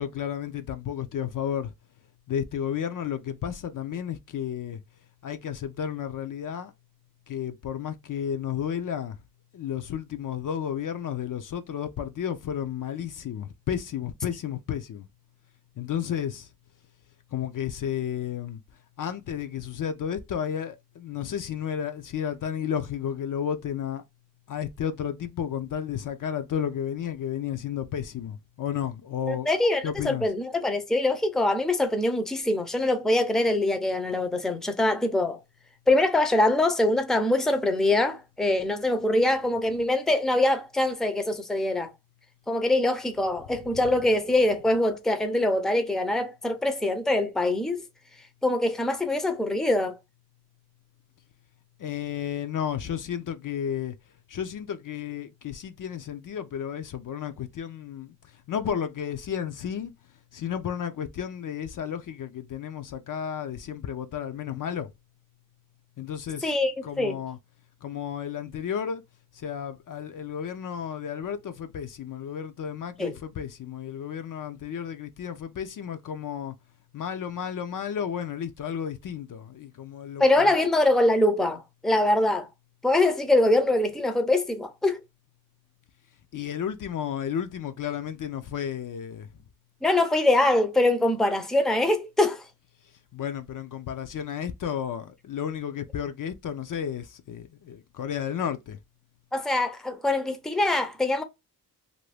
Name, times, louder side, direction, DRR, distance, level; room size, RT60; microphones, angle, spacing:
voice 1, 0.0-1.7 2.3-4.8 5.2-6.7 7.3-9.2 9.5-15.1 15.8-16.5 17.3-18.6 19.0-24.0 24.5-29.5 29.8-30.3 39.7-39.8 43.5-44.4 51.8-54.0 54.3-58.1 58.5-59.9 60.3-64.9 66.0-66.5 66.8-67.4 67.8-69.0 69.3-76.5 76.9-80.6 86.3-89.3 93.1-98.8, left 8 dB, 55° left, 0.5 m, -32 dB
voice 2, 29.3-35.4 35.9-41.9 42.5-47.8 48.4-50.0 66.4-67.2 73.0-73.1 80.2-82.5 82.8-85.0 89.8-92.4 99.3-101.2, left 2 dB, ahead, 0.5 m, -23 dB
2.6 x 2.6 x 3.2 m
cardioid pair, 95°, 39 cm